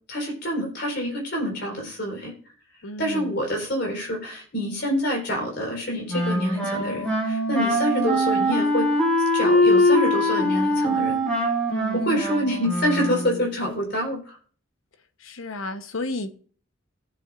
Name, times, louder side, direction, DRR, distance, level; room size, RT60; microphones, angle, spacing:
voice 1, 0.1-2.3 3.0-8.9 9.3-11.2 11.9-14.4, equal, 55° left, 4.4 m, -27 dB
voice 2, 2.8-3.4 11.7-12.1 15.2-16.3, left 2 dB, 85° left, 1.0 m, -33 dB
Wind instrument woodwind instrument, 6.1-13.5, left 1 dB, 5° left, 3.1 m, -22 dB
18.0 x 7.8 x 2.5 m
head